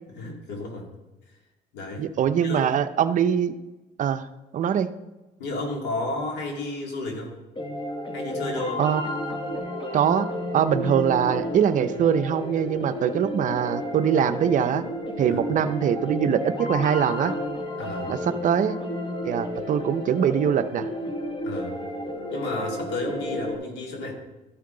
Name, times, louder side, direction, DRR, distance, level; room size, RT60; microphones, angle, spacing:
voice 1, 0.2-0.9 1.7-2.1 2.4-2.8 5.4-7.4 8.1-8.8 15.3-15.4 17.8-18.1 21.4-21.8 22.3-24.1, left 2 dB, 90° left, 0 dB, 2.2 m, -32 dB
voice 2, 2.0-3.5 4.0-4.3 4.5-4.9 8.8-9.0 9.9-10.3 10.5-14.8 15.2-17.4 18.1-18.8 19.3-20.9, right 8 dB, 50° right, 11 dB, 0.5 m, -23 dB
sound 1, 7.6-23.6, left 1 dB, 30° left, 1.4 m, -32 dB
13.0 x 5.8 x 3.8 m, 1.1 s
cardioid pair, 110°, 17 cm